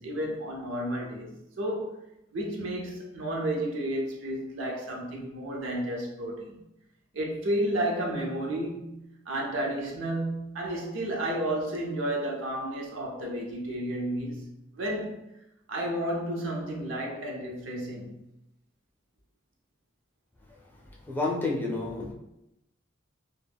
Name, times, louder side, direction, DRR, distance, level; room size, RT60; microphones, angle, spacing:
voice 1, 0.0-1.9 2.3-6.6 7.1-8.9 9.3-15.2 15.7-18.2, right 1 dB, 85° right, 0.6 m, -32 dB
voice 2, 21.0-22.1, left 2 dB, 10° left, 0.4 m, -29 dB
2.2 x 2.1 x 3.3 m
head